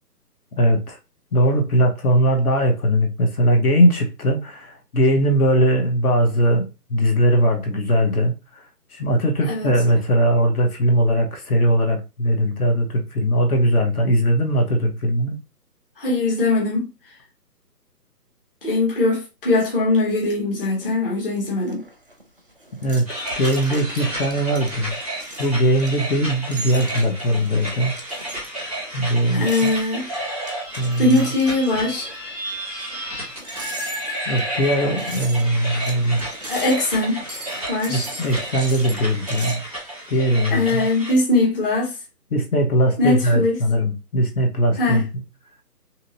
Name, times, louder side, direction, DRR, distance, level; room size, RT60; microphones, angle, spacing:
voice 1, 0.6-1.0 1.3-8.6 8.9-15.4 22.8-23.1 23.4-24.9 25.4-27.9 28.9-29.4 30.8-31.2 34.3-36.2 37.9-39.6 40.1-40.9 42.3-45.1, equal, 65° left, 1.0 m, -20 dB
voice 2, 16.0-17.1 18.6-21.8 29.3-30.1 31.0-32.1 36.5-37.2 37.7-38.1 40.5-42.0 43.0-43.6 44.8-45.1, left 2 dB, 35° left, 1.0 m, -21 dB
sound 1, 21.4-39.6, right 1 dB, 35° right, 0.4 m, -39 dB
sound 2, 23.0-41.1, right 1 dB, 5° left, 0.9 m, -32 dB
2.8 x 2.8 x 2.7 m
hypercardioid pair, 165°, 48 cm